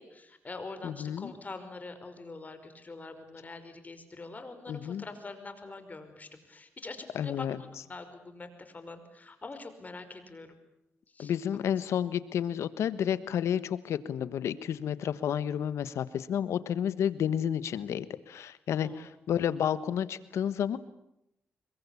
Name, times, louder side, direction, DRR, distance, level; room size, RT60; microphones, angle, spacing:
voice 1, 0.0-7.5 7.8-10.5 11.1-11.3 18.8-19.0, left 3 dB, 35° left, 9 dB, 5.3 m, -44 dB
voice 2, 0.8-1.3 4.7-5.0 7.1-7.6 11.2-20.8, left 9 dB, 85° left, 15 dB, 1.3 m, -31 dB
26.5 x 23.0 x 8.5 m, 0.82 s
cardioid pair, 70°, 5 cm